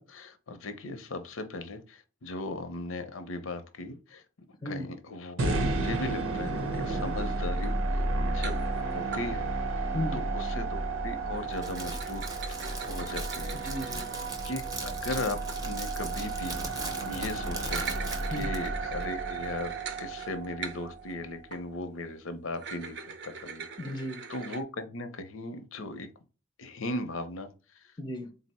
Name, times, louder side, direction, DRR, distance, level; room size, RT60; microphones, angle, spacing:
voice 1, 0.0-4.2 4.6-9.5 10.1-12.2 12.8-13.6 14.4-16.7 17.0-23.0 23.2-23.6 24.3-26.1 26.6-27.5 27.7-27.8, left 2 dB, 85° left, 0.6 m, -38 dB
voice 2, 4.5-4.9 9.9-10.3 13.6-14.1 18.3-18.5 23.8-24.2 28.0-28.3, left 1 dB, 20° left, 0.5 m, -35 dB
sound 1, 5.4-21.5, right 2 dB, 90° right, 0.8 m, -32 dB
sound 2, 7.2-9.3 11.3-16.3 17.5-21.1 21.5-21.7 22.5-24.6, right 5 dB, 55° right, 0.5 m, -42 dB
Crackle, 11.5-18.7, right 2 dB, 20° right, 0.6 m, -40 dB
3.9 x 2.0 x 4.1 m
head